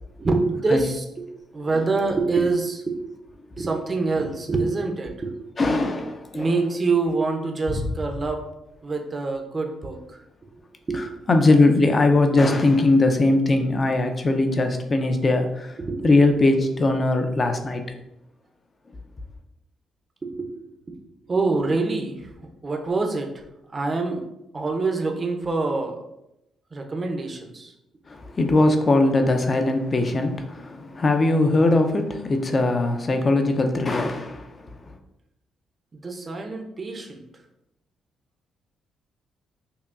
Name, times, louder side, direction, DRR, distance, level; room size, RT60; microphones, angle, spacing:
voice 1, 0.2-1.3 1.5-3.0 3.6-5.3 6.3-8.4 8.8-10.0 10.9-11.0 15.8-16.1 20.2-20.6 21.3-22.3 22.6-23.3 23.7-24.2 24.5-26.0 26.7-27.7 36.0-37.2, right 3 dB, 30° right, 3 dB, 0.6 m, -25 dB
voice 2, 5.6-6.5 7.7-7.8 11.3-15.7 16.0-17.8 28.1-34.6, left 2 dB, 35° left, 6 dB, 0.5 m, -20 dB
5.4 x 2.2 x 2.5 m, 0.85 s
cardioid pair, 90°, 0 cm